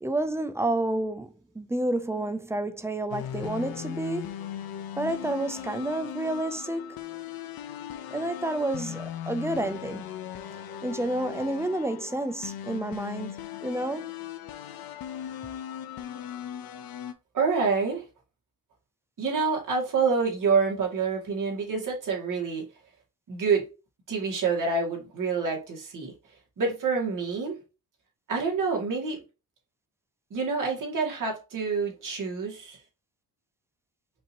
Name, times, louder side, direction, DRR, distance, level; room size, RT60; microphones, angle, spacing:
voice 1, 0.0-4.3 5.0-7.0 8.1-10.0 10.8-14.1, right 1 dB, 10° right, 0.4 m, -30 dB
sound 1, 3.1-17.1, left 10 dB, 75° left, 0.6 m, -38 dB
voice 2, 17.3-18.0 19.2-22.7 23.3-23.6 24.1-26.1 26.6-27.6 28.3-29.2 30.3-32.8, right 5 dB, 55° right, 1.9 m, -27 dB
5.3 x 2.8 x 2.8 m
cardioid pair, 130°, 37 cm